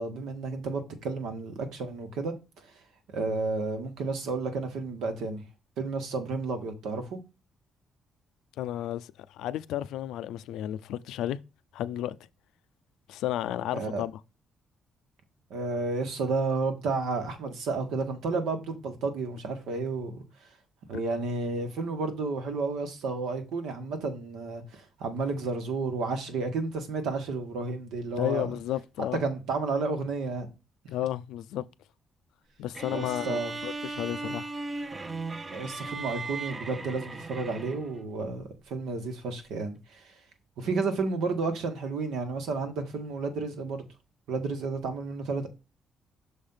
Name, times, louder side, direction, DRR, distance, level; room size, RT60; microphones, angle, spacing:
voice 1, 0.0-2.3 3.1-5.4 5.8-7.2 13.7-14.0 15.5-20.2 20.9-28.5 29.2-30.5 32.9-33.5 35.4-40.1 40.6-43.9 44.3-45.5, right 3 dB, 85° right, 1.5 m, -31 dB
voice 2, 8.6-11.4 11.7-12.2 13.1-14.2 28.2-29.2 30.9-31.7 32.6-34.5, left 12 dB, 90° left, 0.4 m, -32 dB
sound 1, 32.7-38.0, right 3 dB, 30° right, 0.6 m, -37 dB
6.3 x 3.4 x 5.5 m
cardioid pair, 90°, 0 cm